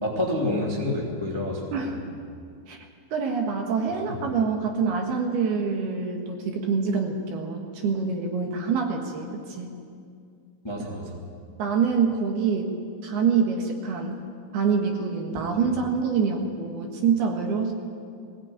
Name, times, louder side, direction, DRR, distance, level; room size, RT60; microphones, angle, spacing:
voice 1, 0.0-2.0 3.9-4.0 10.6-11.2 15.6-15.8, left 1 dB, 10° left, -2 dB, 1.3 m, -29 dB
voice 2, 3.1-9.7 11.6-12.7 13.0-14.2 14.5-17.7, right 5 dB, 65° right, 2 dB, 3.2 m, -26 dB
21.0 x 17.0 x 8.9 m, 2.3 s
omnidirectional pair, 5.6 m